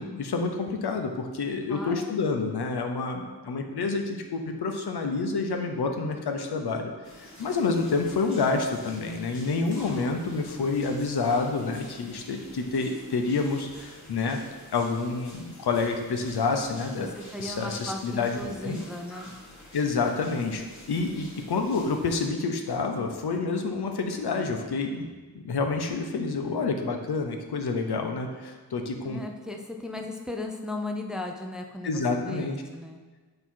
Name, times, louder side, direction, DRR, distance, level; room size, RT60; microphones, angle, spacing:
voice 1, 0.0-6.9 7.2-14.4 14.7-17.1 17.4-18.8 19.7-25.1 25.3-29.2 31.8-32.6, left 4 dB, 85° left, 4 dB, 0.7 m, -28 dB
voice 2, 1.7-2.1 17.0-19.3 29.0-33.0, left 2 dB, ahead, 3 dB, 0.5 m, -36 dB
sound 1, 7.0-22.3, left 1 dB, 45° left, 1.3 m, -48 dB
7.8 x 2.8 x 4.5 m, 1.3 s
wide cardioid pair, 80°, 38 cm